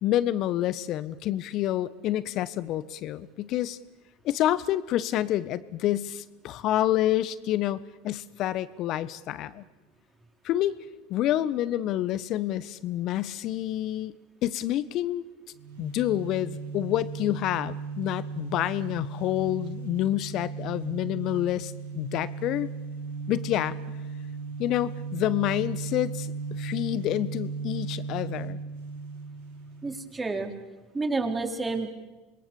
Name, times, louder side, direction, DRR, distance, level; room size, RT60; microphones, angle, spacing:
voice 1, 0.0-3.8 4.2-9.6 10.4-10.8 11.1-14.2 14.4-15.2 15.8-22.7 23.3-23.7 24.6-28.6, left 13 dB, 50° left, 17 dB, 1.2 m, -28 dB
sound 1, 15.5-30.1, right 4 dB, 75° right, 2.8 m, -36 dB
voice 2, 29.8-30.5 30.9-31.9, right 3 dB, 20° right, 4 dB, 4.1 m, -29 dB
27.5 x 22.0 x 7.1 m, 1.2 s
hypercardioid pair, 80°, 0 cm